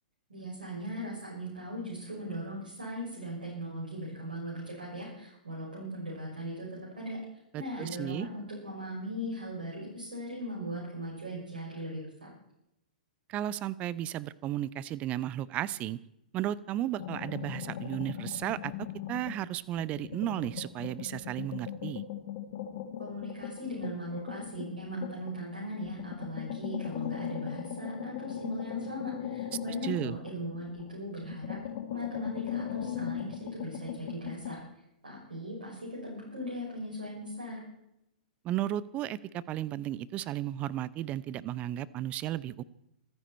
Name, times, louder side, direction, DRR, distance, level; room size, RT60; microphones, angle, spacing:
voice 1, 0.3-7.2 7.5-12.3 23.0-31.6 31.9-34.6 35.0-37.6, equal, 75° right, -5 dB, 6.1 m, -39 dB
voice 2, 7.5-8.3 13.3-16.0 16.3-22.0 29.8-30.1 38.4-42.6, right 13 dB, 30° right, 21 dB, 0.6 m, -34 dB
sound 1, 17.0-19.4 19.8-25.4 25.9-30.9 31.2-34.6, left 10 dB, 50° left, 2.1 m, -39 dB
26.0 x 10.0 x 4.4 m, 0.82 s
figure-of-eight pair, 110°, 5 cm